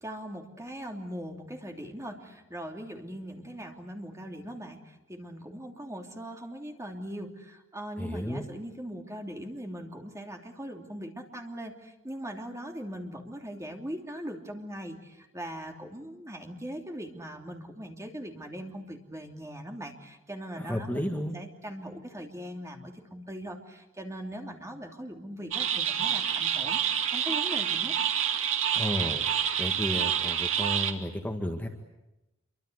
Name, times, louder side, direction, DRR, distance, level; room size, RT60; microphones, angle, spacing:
voice 1, 0.0-27.9, equal, 15° right, 3 dB, 3.1 m, -40 dB
voice 2, 8.0-8.4 20.6-21.4 28.7-29.2 29.6-31.7, equal, 10° left, 3 dB, 1.8 m, -32 dB
sound 1, 25.5-30.9, right 9 dB, 70° right, 2.2 m, -28 dB
27.5 x 24.0 x 8.1 m, 0.95 s
head